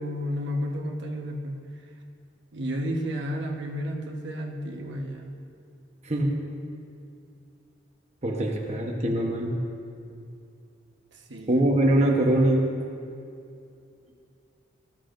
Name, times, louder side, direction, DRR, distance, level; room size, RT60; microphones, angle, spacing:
voice 1, 0.0-1.6 2.5-5.3 11.3-11.6, equal, 65° right, 1 dB, 1.3 m, -32 dB
voice 2, 6.0-6.3 8.2-9.6 11.5-12.7, right 1 dB, 35° right, -1 dB, 1.1 m, -23 dB
19.5 x 13.5 x 2.6 m, 2.6 s
head